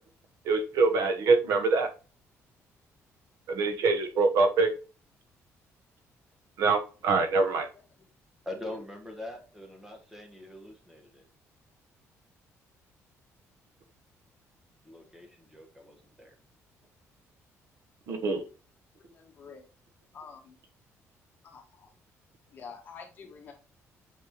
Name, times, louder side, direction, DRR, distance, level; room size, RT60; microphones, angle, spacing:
voice 1, 0.4-1.9 3.5-4.7 6.6-7.7 18.1-18.4, right 4 dB, 75° right, 7 dB, 1.1 m, -24 dB
voice 2, 8.4-11.2 14.8-16.3, left 1 dB, 5° right, 2 dB, 1.3 m, -43 dB
voice 3, 19.0-19.7 20.1-20.6 21.4-21.9 22.5-23.5, left 5 dB, 35° left, 1 dB, 1.6 m, -47 dB
7.9 x 5.4 x 3.0 m, 0.35 s
cardioid pair, 175°, 6 cm